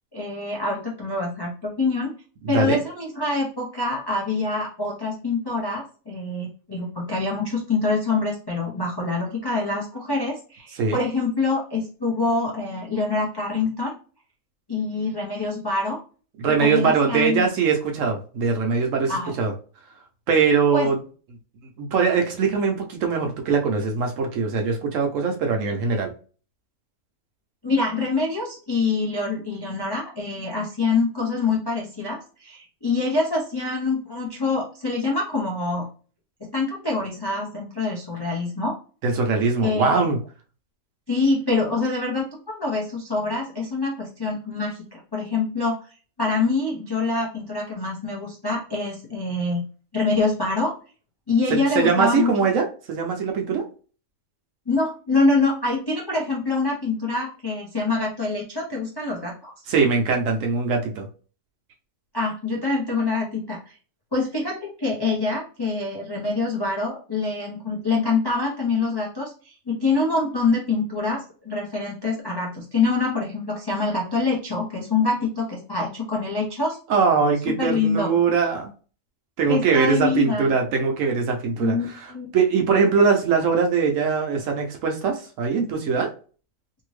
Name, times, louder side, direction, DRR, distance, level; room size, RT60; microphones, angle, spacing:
voice 1, 0.1-2.1 2.5-14.0 14.7-16.0 16.6-17.4 19.1-19.3 20.7-20.9 27.6-35.9 36.5-38.8 39.6-40.1 41.1-45.8 46.2-49.6 49.9-50.7 51.3-52.3 54.7-59.5 62.1-63.6 64.1-76.8 77.6-78.1 79.5-80.5 81.6-82.3, left 3 dB, 40° left, -4 dB, 0.3 m, -25 dB
voice 2, 2.4-2.8 10.8-11.0 16.4-19.5 20.3-21.0 21.8-26.1 39.0-40.2 51.5-53.6 59.7-61.1 76.9-78.7 79.4-86.1, right 5 dB, 70° right, 3 dB, 0.9 m, -22 dB
2.7 x 2.6 x 3.1 m, 0.39 s
omnidirectional pair, 1.5 m